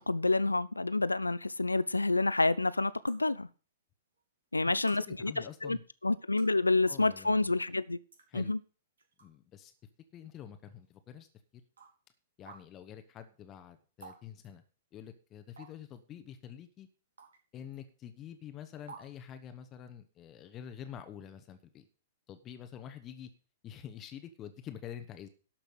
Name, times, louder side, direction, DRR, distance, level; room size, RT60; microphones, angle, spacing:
voice 1, 0.1-3.5 4.5-5.8 6.0-8.0 8.3-8.6, left 2 dB, 85° left, 0.5 m, -28 dB
sound 1, 1.7-1.8 3.1-3.2 4.2-4.3 4.9-5.0 6.1-6.6 7.6-7.7 8.1-8.2 9.0-9.3 9.8-9.9 10.8-10.9 11.8-11.9 12.5-12.6 14.0-14.2 14.4-14.5 15.6-15.9 17.2-17.4 17.7-17.8 18.9-19.1, right 4 dB, 70° right, 3.2 m, -50 dB
voice 2, 4.7-5.8 6.9-7.5 8.3-8.5 9.2-9.7 10.1-11.3 11.5-11.6 12.4-14.6 14.9-16.9 17.5-21.8 22.3-23.3 23.6-25.3, left 9 dB, 30° left, 1.1 m, -47 dB
12.0 x 5.9 x 6.6 m
figure-of-eight pair, 105°, 0 cm